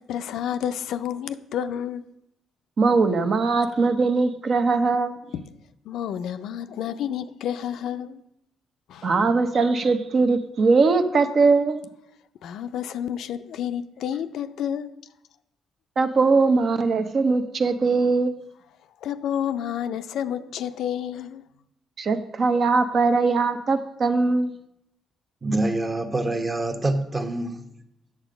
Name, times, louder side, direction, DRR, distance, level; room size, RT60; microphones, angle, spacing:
voice 1, 0.0-2.0 5.3-5.5 5.8-8.2 8.9-9.1 12.4-14.9 19.0-21.4 22.5-22.6, left 9 dB, 80° left, 0.4 m, -30 dB
voice 2, 2.8-5.2 9.0-11.8 16.0-18.3 22.0-24.5, right 4 dB, 50° right, 0.7 m, -21 dB
voice 3, 25.4-27.6, right 2 dB, 25° right, 1.0 m, -25 dB
8.1 x 6.6 x 5.1 m
cardioid pair, 90°, 0 cm